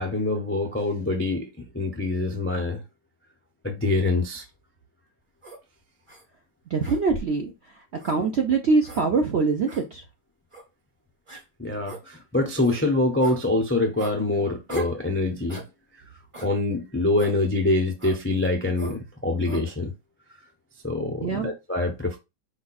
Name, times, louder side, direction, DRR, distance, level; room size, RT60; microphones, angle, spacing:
voice 1, 0.0-2.8 3.6-4.4 11.6-15.6 16.4-19.9 20.8-22.2, left 2 dB, 20° left, 0.3 m, -25 dB
sound 1, 5.4-5.6 6.1-6.2 6.8-7.4 8.0-8.2 8.8-9.0 9.7-9.8 10.5-10.7 11.3-11.4 11.8-12.0 12.6-12.8 13.2-13.4 14.0-14.2 14.7-15.0 15.5-15.7 16.3-16.5 17.2-17.4 18.0-18.2 18.7-19.0 19.4-19.7, right 1 dB, 25° right, 0.8 m, -39 dB
voice 2, 6.7-7.5 8.0-10.0 21.2-21.5, right 4 dB, 60° right, 0.7 m, -23 dB
4.9 x 2.3 x 4.1 m
omnidirectional pair, 1.9 m